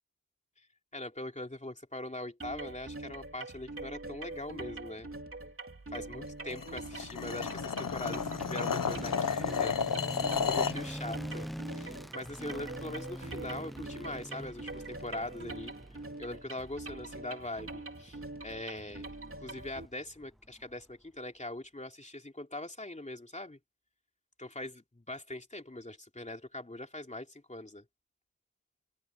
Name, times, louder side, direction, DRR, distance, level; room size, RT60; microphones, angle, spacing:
voice 1, 0.9-5.1 5.9-10.1 10.4-15.7 16.2-19.1 19.4-23.6 24.4-27.8, left 1 dB, 20° left, 3.2 m, -42 dB
sound 1, 2.4-19.9, right 2 dB, 45° right, 3.3 m, -44 dB
sound 2, 6.5-10.8, left 6 dB, 85° left, 1.0 m, -32 dB
sound 3, 6.8-20.9, equal, ahead, 0.5 m, -45 dB
wide cardioid pair, 80°, 32 cm